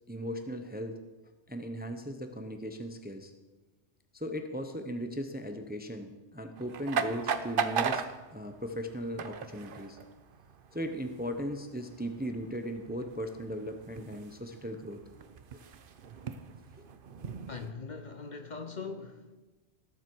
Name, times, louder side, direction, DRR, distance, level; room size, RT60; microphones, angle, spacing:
voice 1, 0.1-1.0 1.5-3.3 4.1-10.0 10.7-15.0 15.5-15.6, equal, 10° right, 0.7 m, -37 dB
sound 1, 6.6-17.7, right 6 dB, 55° right, 0.8 m, -38 dB
voice 2, 17.5-19.4, left 4 dB, 45° left, 0.8 m, -41 dB
18.5 x 7.5 x 4.6 m
omnidirectional pair, 1.2 m